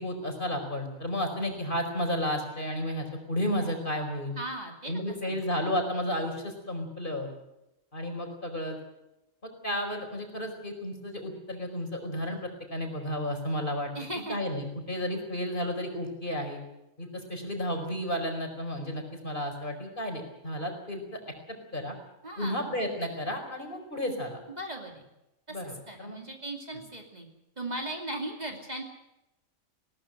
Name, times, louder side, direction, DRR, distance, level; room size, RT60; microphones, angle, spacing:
voice 1, 0.0-4.3 4.8-7.3 7.9-8.8 9.4-12.4 12.7-13.9 14.3-16.6 17.0-21.2 21.5-22.0 22.4-24.4 25.5-26.2, equal, 40° left, 4 dB, 5.0 m, -32 dB
voice 2, 4.4-5.4 13.9-14.4 14.9-15.0 22.2-22.8 24.5-25.1 25.5-27.3 27.6-28.8, right 1 dB, 30° right, 2 dB, 2.8 m, -38 dB
21.0 x 19.0 x 7.8 m, 0.91 s
omnidirectional pair, 1.4 m